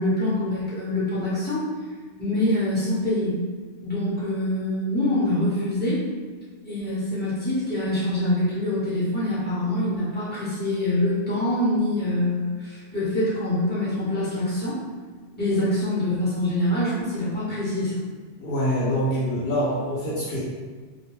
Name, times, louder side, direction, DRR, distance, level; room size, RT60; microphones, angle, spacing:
voice 1, 0.0-1.6 2.2-3.4 3.8-6.0 6.6-14.8 15.4-18.0, left 1 dB, 10° left, -11 dB, 1.0 m, -25 dB
voice 2, 18.4-20.4, equal, 60° left, -9 dB, 0.8 m, -25 dB
2.4 x 2.1 x 3.1 m, 1.5 s
omnidirectional pair, 1.1 m